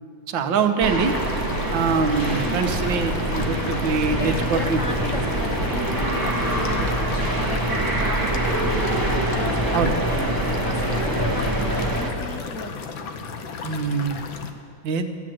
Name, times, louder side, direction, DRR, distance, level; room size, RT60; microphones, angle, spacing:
voice 1, 0.3-1.1 1.7-4.8 9.7-9.9 13.6-14.2 14.8-15.1, right 5 dB, 75° right, 6 dB, 1.7 m, -23 dB
sound 1, 0.8-12.1, right 1 dB, 10° right, 1.2 m, -24 dB
sound 2, 1.0-14.5, left 5 dB, 85° left, 1.7 m, -34 dB
voice 2, 2.1-2.6 4.0-12.8, left 2 dB, 55° left, 4 dB, 1.0 m, -35 dB
14.5 x 9.7 x 7.6 m, 2.7 s
omnidirectional pair, 2.1 m